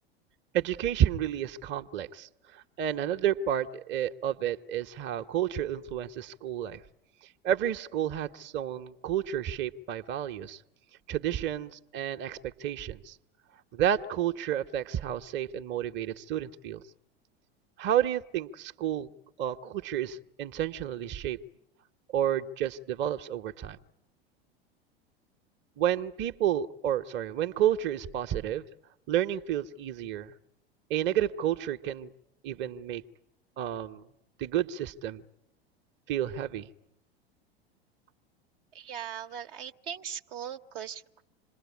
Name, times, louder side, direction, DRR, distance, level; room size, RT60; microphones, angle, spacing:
voice 1, 0.5-2.3 2.5-6.8 7.4-10.6 11.1-13.1 13.7-16.8 17.8-19.1 19.4-21.4 22.1-23.8 25.8-28.6 29.1-30.3 30.9-32.1 32.4-33.0 33.6-34.0 34.4-35.2 36.1-36.7, right 10 dB, 35° right, 6 dB, 0.9 m, -30 dB
voice 2, 38.7-41.2, right 8 dB, 60° right, 6 dB, 1.0 m, -39 dB
26.5 x 20.5 x 8.4 m, 0.82 s
figure-of-eight pair, 85°, 31 cm